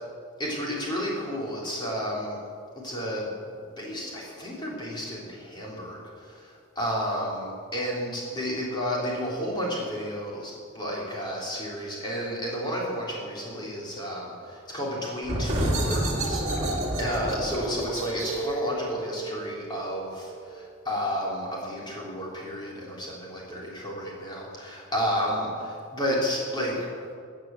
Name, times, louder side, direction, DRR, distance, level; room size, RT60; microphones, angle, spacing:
voice 1, 0.4-2.4 2.8-3.3 3.8-26.7, equal, 20° left, -4 dB, 3.8 m, -32 dB
sound 1, 15.2-20.6, right 1 dB, 35° right, 2.6 m, -29 dB
15.0 x 8.7 x 7.7 m, 2.2 s
head